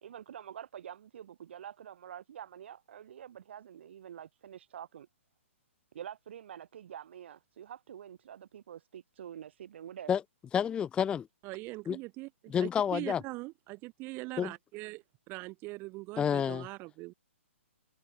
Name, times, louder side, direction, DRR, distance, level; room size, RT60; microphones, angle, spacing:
voice 1, 0.0-5.1 5.9-10.1, right 9 dB, 55° right, 2.4 m, -47 dB
voice 2, 10.5-11.3 11.9-12.0 12.5-13.2 14.4-14.5 16.2-16.7, left 8 dB, 15° left, 0.5 m, -29 dB
voice 3, 11.4-17.1, right 23 dB, 30° right, 1.2 m, -42 dB
figure-of-eight pair, 125°, 7 cm